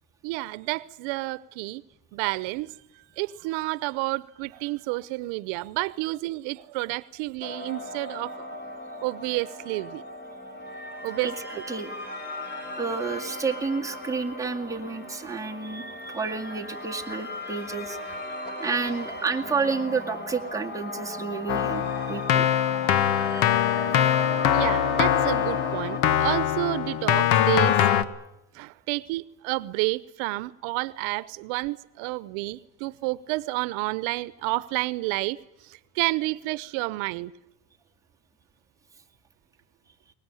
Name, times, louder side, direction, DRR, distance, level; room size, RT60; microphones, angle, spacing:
voice 1, 0.2-1.8 2.1-2.7 3.2-8.5 9.0-10.0 11.0-11.3 24.5-27.8 28.5-35.4 35.6-37.3, right 21 dB, 85° right, 0.9 m, -30 dB
sound 1, 7.4-26.0, left 1 dB, 20° left, 5.9 m, -37 dB
voice 2, 11.2-11.9 12.8-18.2 18.6-21.8 22.1-22.5 24.0-24.1, right 4 dB, 5° right, 2.1 m, -30 dB
Keyboard (musical), 21.5-28.0, left 10 dB, 85° left, 1.5 m, -23 dB
22.5 x 20.0 x 9.9 m
cardioid pair, 140°, 46 cm